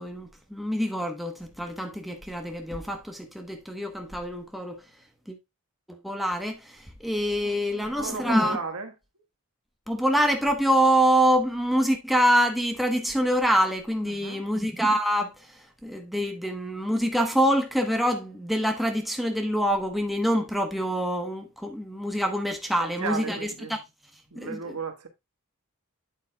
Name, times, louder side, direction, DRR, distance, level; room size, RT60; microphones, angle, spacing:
voice 1, 0.0-4.8 5.3-5.4 5.9-8.6 9.9-23.8 24.4-24.7, equal, ahead, 1.0 m, -25 dB
voice 2, 7.4-8.9 14.0-14.5 22.8-23.7 24.3-25.1, right 4 dB, 80° right, 1.4 m, -35 dB
8.4 x 8.1 x 2.2 m
head